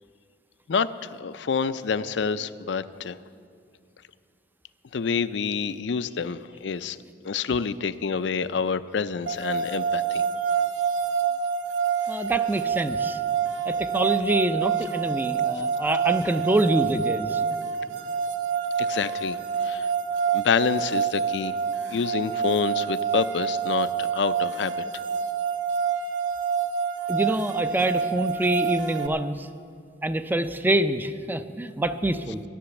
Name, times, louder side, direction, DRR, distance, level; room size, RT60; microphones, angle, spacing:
voice 1, 0.7-3.2 4.9-7.0 7.2-10.2 18.8-19.9 20.3-21.6 21.9-24.7, left 5 dB, 70° left, 13 dB, 0.5 m, -27 dB
sound 1, 9.3-29.1, right 7 dB, 90° right, 0.8 m, -27 dB
voice 2, 12.1-13.2 13.7-17.4 27.1-29.5 30.0-32.4, right 1 dB, 10° right, 10 dB, 0.5 m, -26 dB
13.0 x 10.5 x 7.1 m, 2.3 s
head